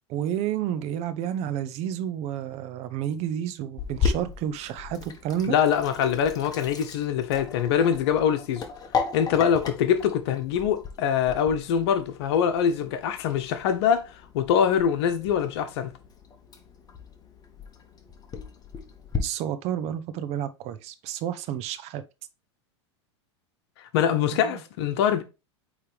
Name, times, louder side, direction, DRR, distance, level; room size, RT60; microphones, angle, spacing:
voice 1, 0.1-5.6 19.2-22.0 24.3-24.6, right 10 dB, 45° right, 0.8 m, -30 dB
Sink (filling or washing), 3.8-19.2, left 5 dB, 25° left, 1.3 m, -36 dB
voice 2, 5.5-8.6 9.1-15.9 23.9-25.2, left 8 dB, 65° left, 1.0 m, -24 dB
8.6 x 3.3 x 3.3 m
hypercardioid pair, 100°, 15 cm